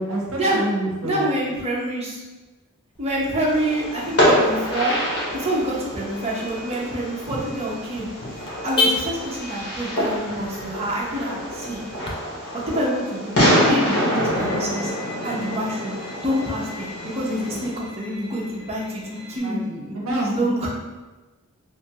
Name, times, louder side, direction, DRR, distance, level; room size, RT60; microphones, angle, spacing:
voice 1, 0.0-1.3 19.3-20.7, right 1 dB, 65° right, -2 dB, 0.7 m, -28 dB
voice 2, 1.0-2.2 3.0-5.0 5.3-8.1 8.4-11.8 12.7-14.9 15.2-16.0 16.2-16.9 17.1-19.0 19.3-19.6 20.1-20.7, right 1 dB, 30° right, -4 dB, 0.6 m, -26 dB
Car / Alarm, 2.9-12.1, left 3 dB, 20° left, 0.3 m, -33 dB
Fireworks, 3.5-17.7, equal, 80° left, 1.1 m, -26 dB
Bowed string instrument, 14.3-19.4, left 2 dB, 5° right, 1.2 m, -42 dB
2.9 x 2.3 x 2.8 m, 1.2 s
head